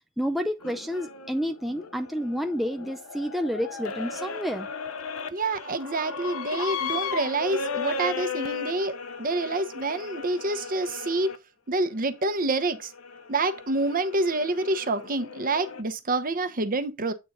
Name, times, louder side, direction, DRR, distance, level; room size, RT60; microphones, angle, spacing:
voice 1, 0.2-4.7, equal, ahead, 0.4 m, -29 dB
sound 1, 0.6-11.4 12.1-15.8, left 5 dB, 80° left, 0.9 m, -36 dB
voice 2, 5.3-11.3 11.7-12.9 13.3-17.1, right 2 dB, 40° right, 0.9 m, -27 dB
8.5 x 3.9 x 4.1 m
head